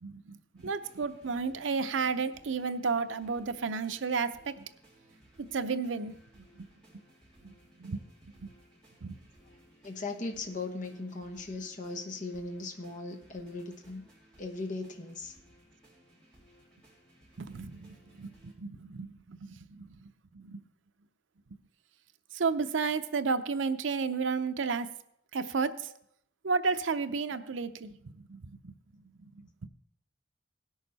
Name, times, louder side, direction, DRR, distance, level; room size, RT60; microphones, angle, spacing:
voice 1, 0.0-4.7 5.4-6.7 6.9-7.0 7.4-8.0 8.4-8.5 9.0-9.2 17.4-20.6 22.3-24.9 25.3-25.9 26.4-28.7 29.2-29.7, right 4 dB, 85° right, 10 dB, 0.6 m, -33 dB
sound 1, 0.5-18.5, right 1 dB, 5° left, 3.0 m, -61 dB
voice 2, 9.8-14.1 14.4-15.3, left 3 dB, 40° left, 3 dB, 1.1 m, -38 dB
17.0 x 6.5 x 4.1 m, 0.72 s
head